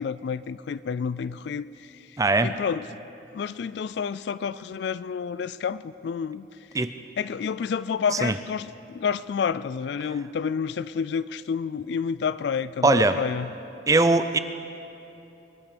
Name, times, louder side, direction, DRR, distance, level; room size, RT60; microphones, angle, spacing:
voice 1, 0.0-2.1 2.4-2.9 3.3-6.5 7.2-13.5, left 6 dB, 60° left, 17 dB, 0.3 m, -29 dB
voice 2, 2.2-2.5 6.7-6.9 8.2-8.3 12.8-13.2 13.9-14.4, right 2 dB, 15° right, 11 dB, 0.4 m, -20 dB
24.0 x 8.8 x 6.7 m, 2.9 s
head